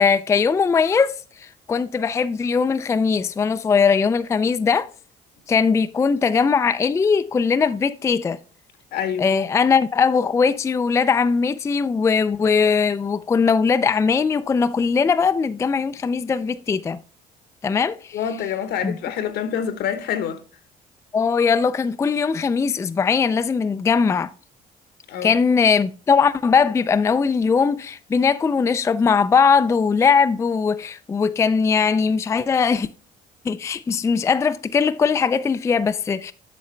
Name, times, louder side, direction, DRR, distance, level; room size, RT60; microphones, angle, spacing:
voice 1, 0.0-4.9 5.5-8.4 9.2-17.0 17.6-18.2 18.8-19.0 21.1-24.3 25.2-32.9 33.5-36.3, left 5 dB, 15° left, 0.3 m, -20 dB
voice 2, 8.9-9.3 18.1-20.4 25.1-25.4, left 8 dB, 75° left, 1.1 m, -26 dB
8.0 x 6.4 x 3.2 m
cardioid pair, 110°, 17 cm